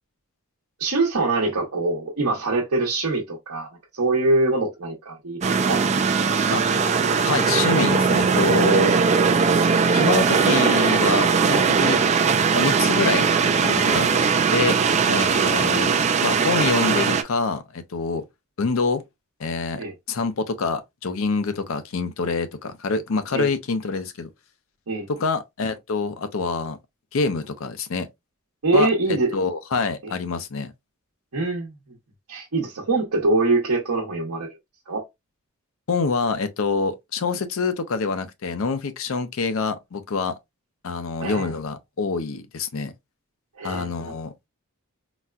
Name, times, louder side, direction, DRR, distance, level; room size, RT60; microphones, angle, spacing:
voice 1, 0.8-3.7 4.0-5.8 19.8-19.9 23.3-23.5 24.9-25.1 28.6-29.3 31.3-31.7 32.3-34.5 34.9-35.0 41.2-41.5 43.6-43.9, right 2 dB, 80° right, 0.9 m, -23 dB
sound 1, 5.4-17.2, right 5 dB, 30° right, 0.3 m, -20 dB
voice 2, 7.3-8.9 9.9-12.0 12.5-14.1 14.5-14.8 15.1-15.9 16.2-18.2 18.6-19.0 19.4-24.3 25.1-26.8 27.1-28.1 28.7-30.7 35.9-40.4 40.8-42.9 43.6-44.3, left 4 dB, 65° left, 0.5 m, -26 dB
4.1 x 2.2 x 2.3 m
head